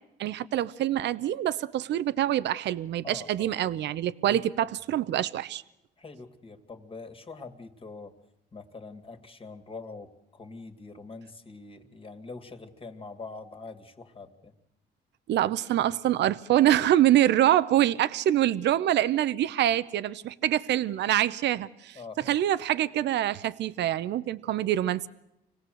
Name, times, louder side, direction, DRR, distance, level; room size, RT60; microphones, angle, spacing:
voice 1, 0.2-5.6 15.3-22.0 22.3-25.1, right 12 dB, 70° right, 0.8 m, -25 dB
voice 2, 3.0-3.7 4.2-4.4 6.0-8.1 8.5-14.5 21.9-22.4, left 3 dB, 30° left, 2.3 m, -44 dB
25.5 x 17.5 x 7.8 m
cardioid pair, 85°, 19 cm